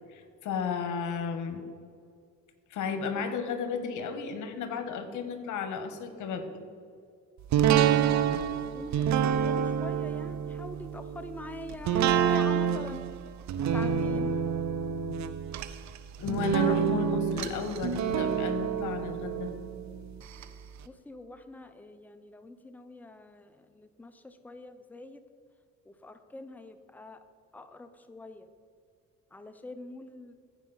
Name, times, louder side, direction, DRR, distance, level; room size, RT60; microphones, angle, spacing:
voice 1, 0.1-1.6 2.7-6.5 15.0-15.1 16.2-19.5, left 5 dB, 80° left, 8 dB, 1.1 m, -33 dB
sound 1, 7.5-20.4 20.8-20.9, right 8 dB, 70° right, 0.6 m, -28 dB
voice 2, 8.7-13.0 13.7-14.4 20.8-25.2 25.8-27.2 27.5-28.5 29.3-30.3, left 2 dB, 5° left, 9 dB, 0.6 m, -44 dB
14.5 x 4.9 x 3.9 m, 2.3 s
cardioid pair, 90°, 30 cm